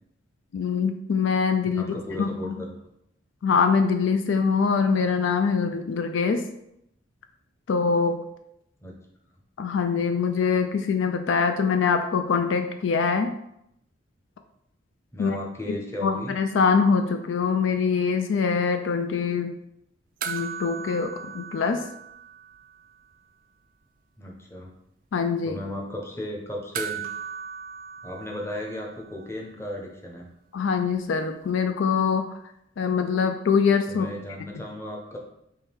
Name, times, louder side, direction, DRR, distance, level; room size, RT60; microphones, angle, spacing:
voice 1, 0.5-2.6 3.4-6.4 7.7-8.2 9.6-13.3 15.2-15.4 15.7-15.8 16.0-19.5 20.3-21.8 25.1-25.6 30.5-32.3 32.8-34.1, left 5 dB, 70° left, 7 dB, 0.4 m, -23 dB
voice 2, 1.7-2.8 8.8-8.9 15.1-16.3 24.2-24.7 25.4-27.0 28.0-30.3 33.9-35.2, left 1 dB, 15° left, -1 dB, 0.8 m, -35 dB
sound 1, 20.2-22.9 23.1-23.2 26.7-29.3 31.5-31.6, right 8 dB, 45° right, 0.3 m, -37 dB
3.7 x 3.2 x 4.4 m, 0.79 s
head